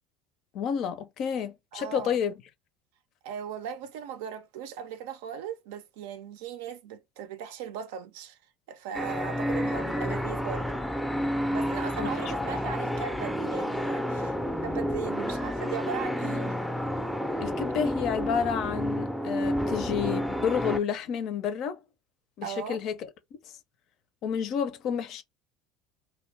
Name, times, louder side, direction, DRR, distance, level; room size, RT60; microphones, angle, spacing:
voice 1, 0.5-2.3 12.0-12.1 12.4-12.5 17.4-21.8 22.4-23.1 24.2-25.2, left 7 dB, 60° left, 0.5 m, -30 dB
voice 2, 1.7-2.2 3.2-8.4 8.7-10.8 11.5-14.4 14.6-16.6 22.4-22.8, right 8 dB, 80° right, 0.5 m, -38 dB
sound 1, 8.9-20.8, equal, ahead, 0.4 m, -30 dB
2.5 x 2.2 x 3.3 m
hypercardioid pair, 85°, 0 cm